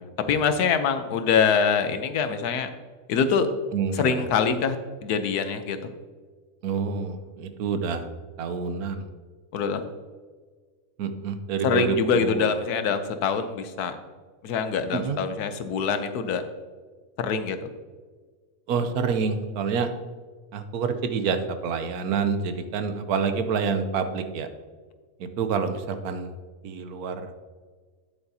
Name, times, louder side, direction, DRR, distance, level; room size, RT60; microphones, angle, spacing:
voice 1, 0.0-2.7 3.1-3.5 3.9-4.8 5.0-5.8 9.5-9.8 11.6-14.0 14.4-16.4 17.2-17.7, left 6 dB, 80° left, 9 dB, 1.3 m, -24 dB
voice 2, 3.7-4.2 6.6-8.1 8.4-9.1 11.0-12.5 14.9-15.2 18.7-19.9 20.5-24.5 25.2-26.3 26.6-27.3, right 5 dB, 75° right, 8 dB, 1.2 m, -27 dB
9.6 x 8.0 x 2.8 m, 1.5 s
omnidirectional pair, 1.6 m